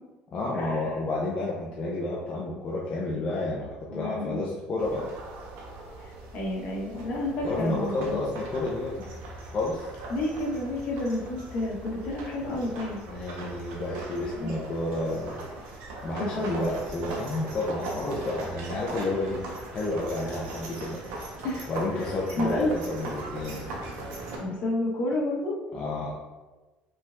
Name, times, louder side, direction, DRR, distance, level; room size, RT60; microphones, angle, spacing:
voice 1, 0.3-5.1 7.4-9.1 9.5-9.9 12.4-12.6 13.1-15.4 16.0-21.0 21.7-23.7 25.7-26.1, left 2 dB, 30° left, -4 dB, 0.6 m, -31 dB
voice 2, 3.9-4.5 6.0-8.2 10.1-13.0 14.4-14.5 16.3-16.8 21.4-21.7 21.9-22.1 22.4-22.7 24.4-25.6, left 1 dB, 50° left, -3 dB, 1.2 m, -30 dB
sound 1, 4.8-24.4, right 2 dB, 85° right, 1.0 m, -39 dB
5.6 x 3.5 x 2.5 m, 1.2 s
cardioid pair, 150°, 3 cm